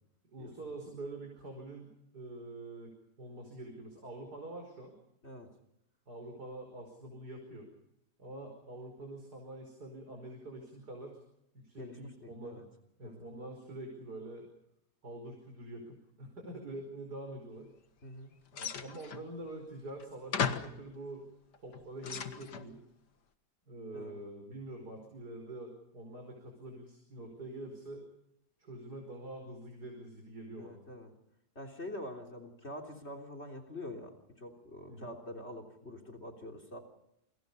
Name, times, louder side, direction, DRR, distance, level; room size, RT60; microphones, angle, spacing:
voice 1, 0.2-5.0 6.1-7.7 8.2-11.2 11.5-12.6 13.0-14.5 15.0-17.7 18.6-21.3 21.6-22.8 23.7-28.1 28.6-30.8 34.9-35.1, right 2 dB, 70° right, 3 dB, 5.7 m, -46 dB
voice 2, 11.8-12.7 13.0-13.3 18.0-18.3 23.9-24.2 30.5-31.1 31.6-36.8, left 1 dB, 40° left, 9 dB, 3.7 m, -45 dB
sound 1, 18.5-19.3 20.0-20.1 20.3-20.8 21.5-22.7, left 7 dB, 85° left, 2.3 m, -36 dB
29.5 x 24.0 x 5.5 m, 0.80 s
omnidirectional pair, 1.7 m